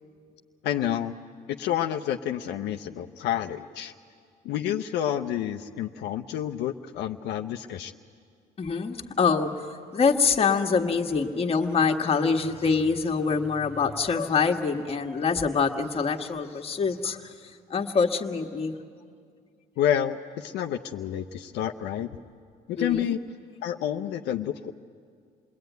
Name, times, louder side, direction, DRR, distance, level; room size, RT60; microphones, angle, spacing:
voice 1, 0.6-1.1 1.6-3.9 4.4-7.9 19.8-22.1 22.7-23.2 23.6-24.7, left 10 dB, 85° left, 5 dB, 0.8 m, -29 dB
voice 2, 8.6-9.5 9.9-17.3 17.7-18.7 22.8-23.1, left 5 dB, 35° left, 3 dB, 1.7 m, -25 dB
27.5 x 21.0 x 9.3 m, 2.2 s
cardioid pair, 110°, 17 cm